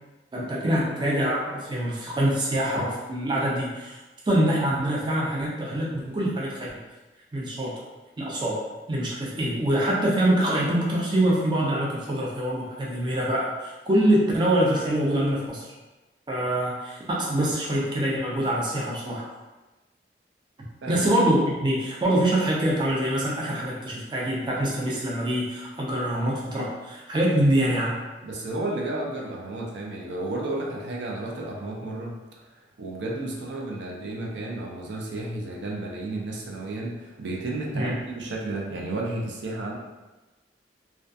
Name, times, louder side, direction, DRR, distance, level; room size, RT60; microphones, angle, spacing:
voice 1, 0.3-4.0 4.2-6.8 7.3-7.8 8.2-8.6 8.9-15.7 16.3-19.3 20.9-28.0 37.7-38.0, right 1 dB, 25° right, -4 dB, 0.4 m, -25 dB
voice 2, 28.2-32.2 32.8-39.8, right 2 dB, 90° right, -1 dB, 0.5 m, -32 dB
2.3 x 2.2 x 2.5 m, 1.1 s
head